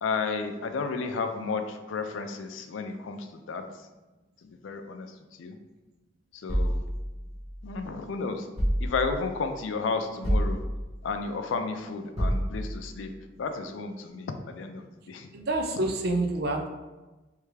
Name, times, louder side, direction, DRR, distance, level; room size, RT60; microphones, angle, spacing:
voice 1, 0.0-3.6 4.4-5.6 6.3-6.8 7.6-8.5 8.8-10.6 11.0-13.1 13.4-15.3, left 4 dB, 80° left, 7 dB, 0.4 m, -32 dB
sound 1, 6.5-7.9 8.6-9.4 10.2-11.1 12.2-13.0, equal, 35° right, 1.3 m, -29 dB
voice 2, 15.3-16.7, right 2 dB, 55° right, 4 dB, 0.5 m, -27 dB
3.5 x 3.2 x 3.2 m, 1.1 s
head